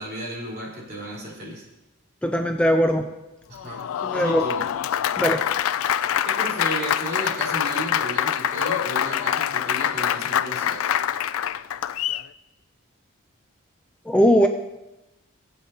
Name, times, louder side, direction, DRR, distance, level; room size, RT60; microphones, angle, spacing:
voice 1, 0.0-1.7 3.5-4.6 6.2-10.9, equal, 45° right, -6 dB, 3.7 m, -33 dB
voice 2, 2.2-3.1 4.0-4.5 5.2-5.4 14.1-14.5, equal, 5° left, 4 dB, 0.4 m, -19 dB
Applause, 3.5-12.3, left 10 dB, 80° left, 0.3 m, -25 dB
18.5 x 8.3 x 2.8 m, 0.98 s
head